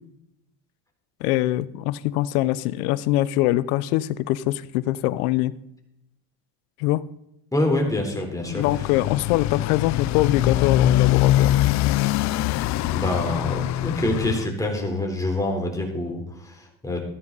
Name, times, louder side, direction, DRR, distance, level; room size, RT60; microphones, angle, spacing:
voice 1, 1.2-5.5 6.8-7.0 8.4-11.5, left 16 dB, 85° left, 17 dB, 0.9 m, -23 dB
voice 2, 7.5-8.7 12.9-17.0, left 1 dB, 10° left, 1 dB, 3.7 m, -26 dB
Motorcycle, 8.5-14.5, left 14 dB, 40° left, 0.4 m, -23 dB
14.5 x 13.0 x 4.1 m, 0.80 s
supercardioid pair, 115°, 43 cm